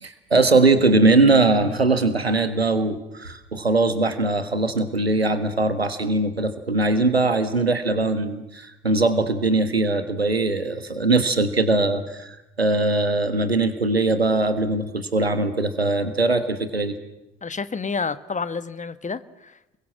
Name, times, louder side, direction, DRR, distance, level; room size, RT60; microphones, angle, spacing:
voice 1, 0.0-16.9, right 2 dB, 90° right, 11 dB, 1.5 m, -21 dB
voice 2, 17.4-19.8, left 5 dB, 25° left, 15 dB, 1.4 m, -30 dB
29.0 x 22.0 x 7.6 m, 0.92 s
figure-of-eight pair, 45°, 30 cm